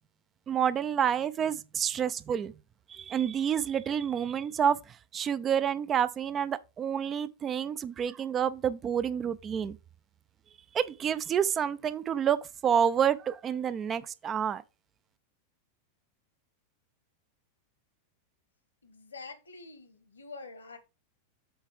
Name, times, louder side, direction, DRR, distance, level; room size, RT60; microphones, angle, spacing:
voice 1, 0.5-2.5 2.9-9.8 10.7-14.6, right 8 dB, 25° right, 0.5 m, -29 dB
voice 2, 18.8-20.8, left 3 dB, 75° left, 1.5 m, -46 dB
7.9 x 3.3 x 4.8 m
figure-of-eight pair, 90°, 0 cm